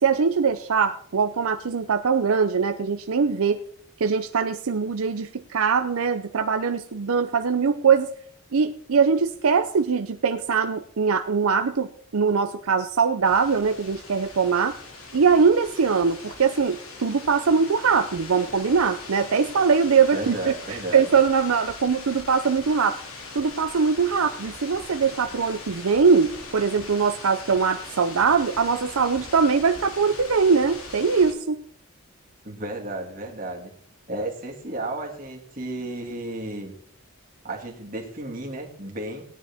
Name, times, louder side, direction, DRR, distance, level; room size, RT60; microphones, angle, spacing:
voice 1, 0.0-3.6 4.0-8.1 8.5-14.8 15.1-23.0 23.3-31.6, right 5 dB, 75° right, 7 dB, 0.6 m, -22 dB
sound 1, 13.2-31.3, left 3 dB, 75° left, 2.4 m, -41 dB
voice 2, 20.1-21.1 32.4-33.7 34.1-36.7 37.4-39.2, right 1 dB, 40° right, 0 dB, 2.2 m, -33 dB
18.0 x 9.9 x 3.5 m, 0.62 s
head